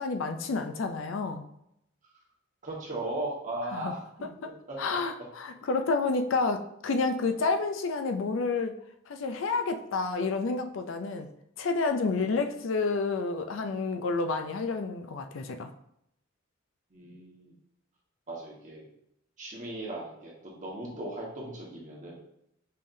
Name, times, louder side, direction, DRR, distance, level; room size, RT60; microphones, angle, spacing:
voice 1, 0.0-1.5 3.7-3.9 4.8-8.7 9.1-11.3 11.6-15.7, left 4 dB, 70° left, 6 dB, 0.4 m, -29 dB
voice 2, 2.6-4.0 4.4-4.8 12.1-12.4 16.9-17.5 18.3-18.9 19.4-22.2, right 2 dB, 40° right, -4 dB, 1.4 m, -37 dB
5.5 x 3.4 x 2.6 m, 0.77 s
head